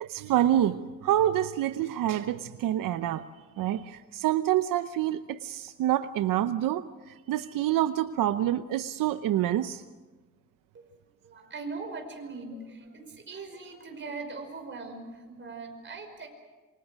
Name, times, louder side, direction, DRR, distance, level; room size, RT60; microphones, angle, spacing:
voice 1, 0.0-3.3 3.6-9.8, right 12 dB, 85° right, 11 dB, 0.8 m, -27 dB
voice 2, 11.2-16.3, right 3 dB, 35° right, 4 dB, 5.5 m, -40 dB
27.0 x 25.5 x 6.4 m, 1.3 s
cardioid pair, 120°, 33 cm